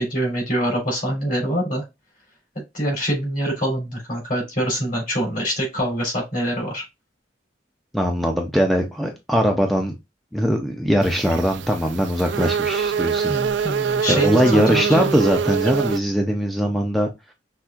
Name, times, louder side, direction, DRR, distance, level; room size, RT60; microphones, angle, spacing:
voice 1, 0.0-1.8 2.5-6.8 13.3-15.2, equal, 50° left, 3.3 m, -25 dB
voice 2, 7.9-10.0 10.3-13.3 14.1-17.1, equal, ahead, 0.5 m, -21 dB
sound 1, 11.0-16.0, right 6 dB, 75° right, 0.4 m, -24 dB
5.9 x 3.5 x 2.4 m
head